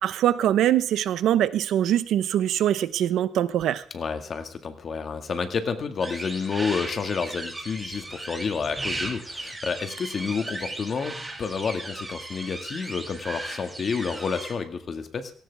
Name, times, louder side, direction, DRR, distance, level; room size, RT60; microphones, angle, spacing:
voice 1, 0.0-3.8, right 11 dB, 85° right, 14 dB, 0.9 m, -23 dB
voice 2, 3.9-15.3, left 5 dB, 45° left, 7 dB, 2.0 m, -30 dB
sound 1, 6.0-14.5, right 2 dB, 15° right, 2.5 m, -36 dB
18.5 x 17.5 x 3.6 m, 0.43 s
cardioid pair, 130°, 0 cm